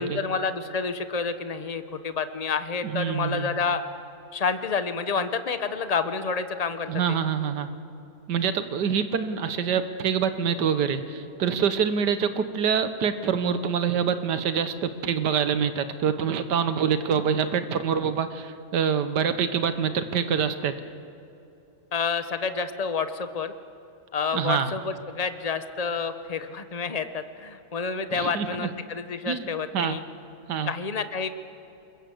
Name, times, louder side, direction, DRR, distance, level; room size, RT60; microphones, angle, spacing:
voice 1, 0.0-3.8 4.3-7.2 21.9-23.5 24.1-30.0 30.7-31.3, left 5 dB, 30° left, 10 dB, 0.8 m, -29 dB
voice 2, 2.8-3.5 6.9-7.7 8.3-20.7 24.3-24.7 28.1-28.7 29.3-29.5 29.7-30.0 30.5-30.7, right 7 dB, 85° right, 10 dB, 1.6 m, -26 dB
28.5 x 21.5 x 7.8 m, 2.8 s
omnidirectional pair, 1.8 m